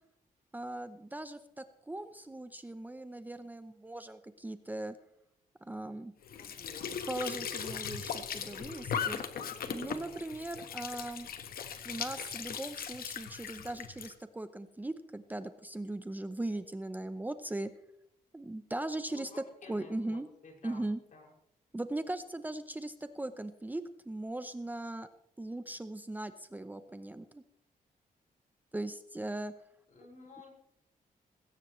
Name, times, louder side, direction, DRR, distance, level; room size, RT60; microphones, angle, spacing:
voice 1, 0.5-5.0 5.6-6.1 7.1-9.2 9.7-11.3 11.8-17.7 18.3-19.3 19.7-20.3 20.6-21.0 21.7-25.1 25.4-27.4 28.7-29.5, right 1 dB, 10° right, 10 dB, 0.7 m, -39 dB
Squeak / Sink (filling or washing) / Trickle dribble, 6.2-14.1, left 7 dB, 80° left, 1.4 m, -39 dB
voice 2, 6.4-7.7 9.5-10.2 19.1-20.8 21.1-21.3 29.9-30.5, left 3 dB, 60° left, 0 dB, 6.3 m, -53 dB
19.5 x 17.0 x 3.2 m, 0.75 s
wide cardioid pair, 130°, 15 cm